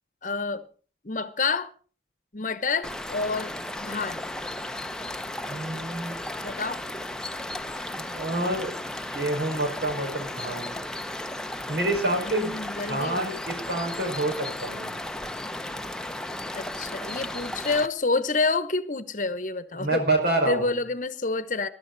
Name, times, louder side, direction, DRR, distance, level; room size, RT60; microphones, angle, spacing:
voice 1, 0.2-0.6 1.0-1.7 2.3-3.5 3.8-4.2 6.4-6.8 12.3-13.3 16.5-20.0 20.5-21.7, left 3 dB, 45° left, 0.9 m, -28 dB
sound 1, 2.8-17.9, left 1 dB, 5° left, 0.6 m, -35 dB
voice 2, 5.5-6.2 8.0-8.7 9.1-10.7 11.7-12.6 12.9-14.9 19.7-20.7, right 2 dB, 70° right, 5.2 m, -27 dB
21.0 x 12.0 x 4.0 m
head